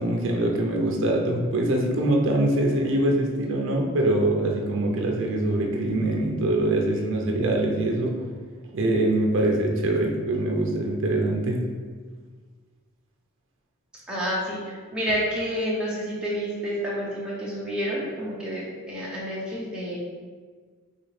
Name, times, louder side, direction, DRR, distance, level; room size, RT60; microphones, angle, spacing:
voice 1, 0.0-8.2 8.7-11.6, right 1 dB, 60° right, 1 dB, 0.5 m, -23 dB
voice 2, 14.1-20.0, equal, 5° right, -7 dB, 0.5 m, -29 dB
3.9 x 2.4 x 3.1 m, 1.5 s
head